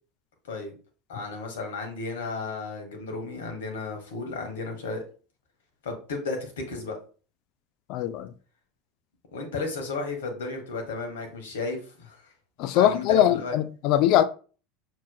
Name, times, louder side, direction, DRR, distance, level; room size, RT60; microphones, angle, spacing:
voice 1, 1.1-5.0 5.8-7.0 9.3-12.2 12.7-13.5, left 3 dB, 80° left, 1.2 m, -33 dB
voice 2, 7.9-8.3 12.6-14.2, left 11 dB, 60° left, 0.3 m, -21 dB
6.0 x 3.0 x 2.2 m
hypercardioid pair, 90°, 0 cm